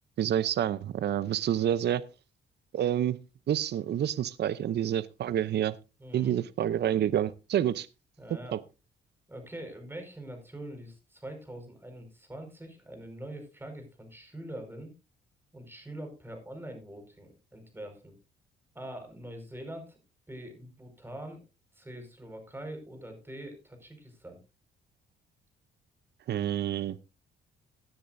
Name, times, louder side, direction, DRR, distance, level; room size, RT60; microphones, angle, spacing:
voice 1, 0.2-2.0 2.7-3.2 3.5-5.7 6.1-7.9 8.5-8.6 26.3-27.0, right 10 dB, 60° right, 16 dB, 0.7 m, -28 dB
voice 2, 6.0-6.3 8.2-8.6 9.3-14.9 15.5-18.1 18.7-20.0 20.3-21.4 21.7-24.4, right 1 dB, 10° right, 5 dB, 5.0 m, -43 dB
17.0 x 10.0 x 2.6 m, 0.29 s
cardioid pair, 90°, 20 cm